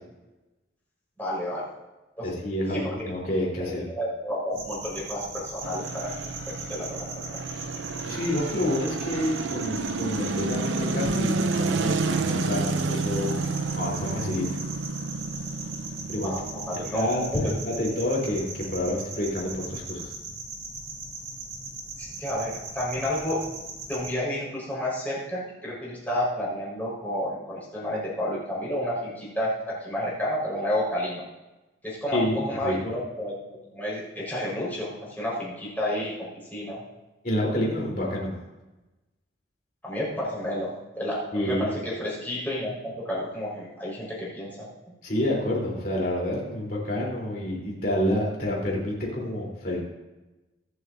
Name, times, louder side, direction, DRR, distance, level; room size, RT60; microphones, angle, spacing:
voice 1, 1.2-1.6 2.2-2.3 2.7-3.0 3.6-6.1 6.5-7.4 16.2-17.0 17.4-17.7 22.0-23.4 23.9-31.2 31.8-33.4 33.7-36.8 39.8-44.7, left 1 dB, 10° left, -7 dB, 4.8 m, -31 dB
voice 2, 2.2-3.8 8.0-13.5 13.7-14.5 16.1-16.3 16.9-20.1 32.1-32.9 37.2-38.3 41.3-41.7 45.0-49.8, left 1 dB, 50° left, -3 dB, 3.8 m, -28 dB
sound 1, 4.5-24.1, right 2 dB, 35° right, 3.2 m, -39 dB
sound 2, 5.6-19.9, right 3 dB, 80° right, 0.5 m, -31 dB
23.5 x 8.0 x 2.7 m, 1.1 s
head